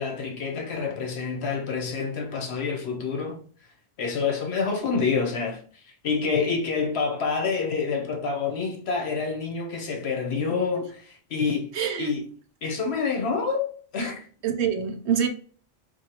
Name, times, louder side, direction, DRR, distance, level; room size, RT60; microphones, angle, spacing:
voice 1, 0.0-3.4 4.0-11.7 12.0-12.3 12.6-14.3, left 5 dB, 75° left, 1.1 m, -27 dB
voice 2, 11.7-12.1 14.4-15.3, right 8 dB, 80° right, 1.0 m, -25 dB
4.5 x 2.6 x 2.8 m
omnidirectional pair, 1.1 m